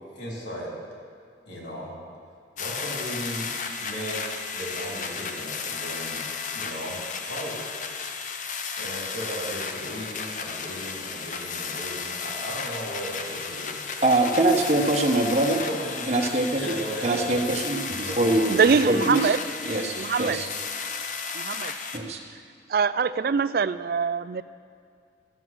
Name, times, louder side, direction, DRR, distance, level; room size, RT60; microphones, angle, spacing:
voice 1, 0.1-0.7 1.5-2.0 2.6-4.2 4.5-6.2 6.5-7.7 8.8-14.1 14.8-14.9 15.4-16.1 16.6-17.4 18.0-18.3, equal, 80° left, -4 dB, 3.8 m, -36 dB
sound 1, 2.6-22.0, left 5 dB, 45° left, 0.7 m, -34 dB
voice 2, 14.0-15.6 16.1-16.7 17.0-19.3 19.6-20.5 21.9-22.2, right 2 dB, 35° right, 2 dB, 1.0 m, -23 dB
voice 3, 18.5-19.4 20.0-20.4 21.3-21.7 22.7-24.4, right 5 dB, 55° right, 15 dB, 0.3 m, -23 dB
14.0 x 7.9 x 6.2 m, 2.2 s
head